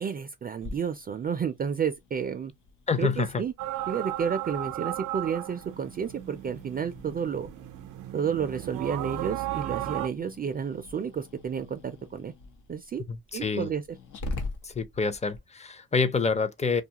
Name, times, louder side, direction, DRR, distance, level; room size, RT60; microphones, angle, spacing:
voice 1, 0.0-2.5 3.0-3.5 3.9-7.5 8.1-12.3 12.7-13.0 13.3-13.8, right 7 dB, 30° right, 0.4 m, -31 dB
Growling, 0.6-15.4, left 2 dB, 85° left, 0.9 m, -44 dB
voice 2, 2.9-3.4 13.1-13.7 14.6-16.8, left 5 dB, 20° left, 0.5 m, -27 dB
sound 1, 3.6-10.1, right 14 dB, 90° right, 0.5 m, -35 dB
2.7 x 2.3 x 2.8 m
cardioid pair, 90°, 30 cm